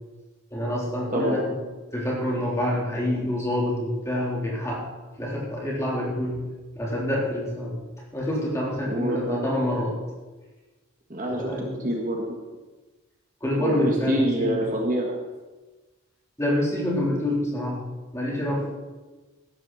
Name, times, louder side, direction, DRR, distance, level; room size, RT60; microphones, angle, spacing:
voice 1, 0.5-1.5 1.9-4.8 5.2-6.5 6.8-7.8 8.1-10.0 11.3-11.9 13.4-14.6 16.4-17.9 18.1-18.8, left 1 dB, 15° left, -4 dB, 3.6 m, -27 dB
voice 2, 8.9-9.5 11.1-11.5 11.8-12.4 13.6-15.2, equal, 40° right, 0 dB, 1.6 m, -26 dB
15.0 x 12.5 x 4.2 m, 1.2 s
head